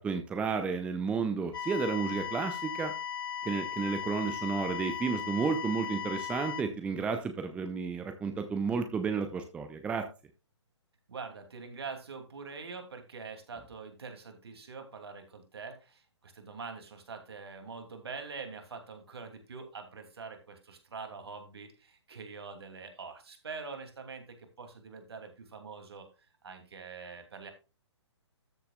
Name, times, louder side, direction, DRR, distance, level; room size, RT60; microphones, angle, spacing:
voice 1, 0.0-2.9 3.4-10.1, right 5 dB, 10° right, 8 dB, 0.7 m, -32 dB
sound 1, 1.5-6.6, left 8 dB, 50° left, 0.9 m, -37 dB
voice 2, 11.1-26.1 26.4-27.5, right 4 dB, 60° right, 6 dB, 2.7 m, -44 dB
13.5 x 6.9 x 2.4 m, 0.30 s
figure-of-eight pair, 130°, 15 cm